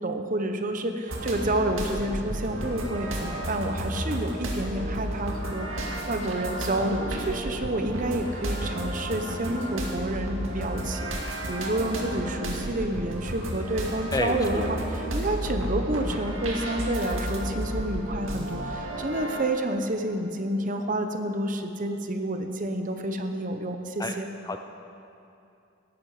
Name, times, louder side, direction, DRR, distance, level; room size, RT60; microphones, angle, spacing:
voice 1, 0.0-24.3, right 1 dB, 40° right, 6 dB, 1.0 m, -29 dB
sound 1, 1.1-19.4, right 1 dB, 80° right, 2.2 m, -32 dB
voice 2, 14.1-14.8 24.0-24.2 24.4-24.6, left 2 dB, 20° left, 6 dB, 0.6 m, -30 dB
17.0 x 13.5 x 5.0 m, 2.6 s
head